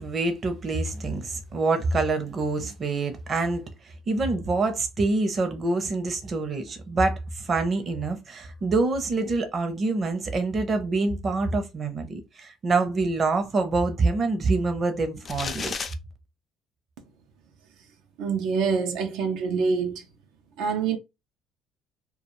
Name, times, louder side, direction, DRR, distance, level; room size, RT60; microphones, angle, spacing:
voice 1, 0.0-15.7, right 3 dB, 40° right, 0.6 m, -26 dB
sound 1, 15.3-15.9, left 5 dB, 35° left, 0.4 m, -32 dB
voice 2, 18.2-20.0 20.6-21.0, right 5 dB, 85° right, 0.5 m, -25 dB
2.3 x 2.3 x 3.0 m
cardioid pair, 100°, 0 cm